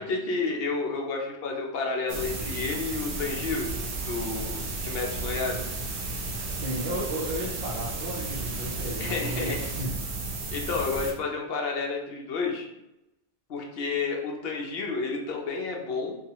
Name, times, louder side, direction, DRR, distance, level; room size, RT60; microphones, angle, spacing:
voice 1, 0.0-3.7 4.0-5.6 9.0-9.7 10.5-12.7 13.5-16.1, left 4 dB, 65° left, 1 dB, 0.7 m, -30 dB
sound 1, 2.1-11.1, right 2 dB, 70° right, 0.8 m, -33 dB
voice 2, 6.5-9.9 10.3-10.4, right 1 dB, 55° right, -5 dB, 0.5 m, -34 dB
2.8 x 2.3 x 2.8 m, 0.89 s
omnidirectional pair, 1.2 m